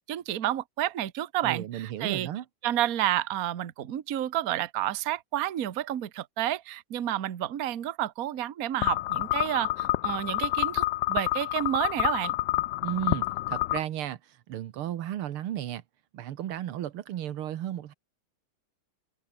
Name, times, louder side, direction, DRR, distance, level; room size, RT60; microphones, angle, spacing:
voice 1, 0.0-2.3 2.6-12.3, right 12 dB, 50° right, 1.3 m, -30 dB
voice 2, 1.4-2.5 12.8-14.2 14.5-15.8 16.1-17.9, right 11 dB, 80° right, 1.9 m, -34 dB
sound 1, 8.8-13.8, left 16 dB, 80° left, 1.0 m, -28 dB
omnidirectional pair, 2.4 m